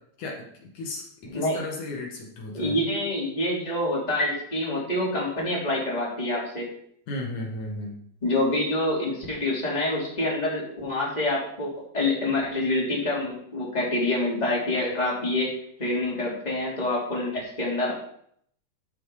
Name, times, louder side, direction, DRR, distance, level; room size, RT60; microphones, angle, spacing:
voice 1, 0.2-2.8 7.1-8.0, left 2 dB, 75° left, -1 dB, 3.5 m, -35 dB
voice 2, 2.5-6.7 8.2-15.5 15.8-17.9, left 1 dB, 15° left, -5 dB, 3.4 m, -26 dB
12.5 x 6.9 x 5.0 m, 0.67 s
omnidirectional pair, 3.5 m